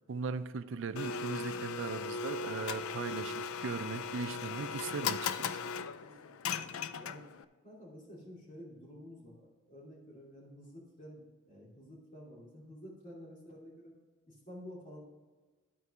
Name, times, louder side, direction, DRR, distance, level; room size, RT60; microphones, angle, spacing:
voice 1, 0.1-5.5, right 4 dB, 60° right, 11 dB, 0.4 m, -38 dB
Domestic sounds home sounds, 0.9-7.4, left 5 dB, 90° left, 0.4 m, -38 dB
voice 2, 6.0-7.3 7.6-13.9 14.3-15.0, equal, 40° left, -4 dB, 2.7 m, -51 dB
12.5 x 4.6 x 4.8 m, 1.3 s
head